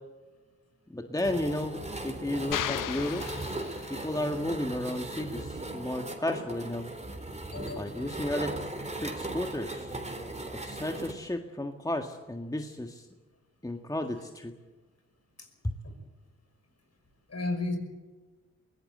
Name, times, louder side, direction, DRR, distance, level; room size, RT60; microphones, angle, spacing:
voice 1, 0.9-3.3 3.9-6.9 7.8-8.5 9.0-10.0 10.5-13.1 13.6-14.5 15.6-15.7, left 1 dB, 10° left, 4 dB, 1.8 m, -33 dB
sound 1, 1.2-11.1, right 2 dB, 20° right, 3.8 m, -38 dB
sound 2, 2.5-4.2, left 11 dB, 70° left, 0.7 m, -35 dB
voice 2, 7.5-8.0 17.3-17.8, left 2 dB, 50° left, 6 dB, 5.7 m, -33 dB
22.0 x 17.5 x 7.9 m, 1.3 s
supercardioid pair, 50°, 33 cm